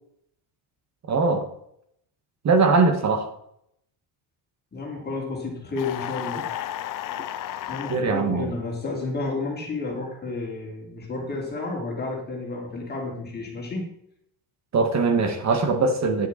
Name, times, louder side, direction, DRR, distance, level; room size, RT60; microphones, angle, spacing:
voice 1, 1.1-1.5 2.4-3.3 7.9-8.5 14.7-16.3, right 4 dB, 35° right, 7 dB, 1.8 m, -21 dB
voice 2, 4.7-6.5 7.7-13.9, left 3 dB, 20° left, -2 dB, 3.4 m, -31 dB
sound 1, 5.8-8.0, left 12 dB, 45° left, 0.7 m, -32 dB
10.5 x 8.0 x 4.3 m, 0.72 s
cardioid pair, 150°, 46 cm